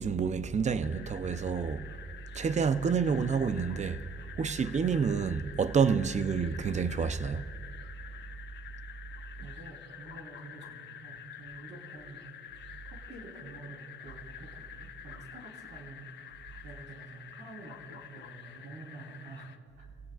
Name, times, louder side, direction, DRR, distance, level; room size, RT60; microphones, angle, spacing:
voice 1, 0.0-1.9 2.3-4.0 4.4-7.4 9.4-9.5, right 6 dB, 35° right, 0.6 m, -28 dB
sound 1, 0.8-19.6, left 9 dB, 65° left, 0.9 m, -48 dB
voice 2, 9.4-12.3 13.1-16.1 16.6-19.5 19.8-19.9, right 3 dB, 65° right, 4.0 m, -48 dB
26.5 x 17.0 x 2.4 m
cardioid pair, 90°, 20 cm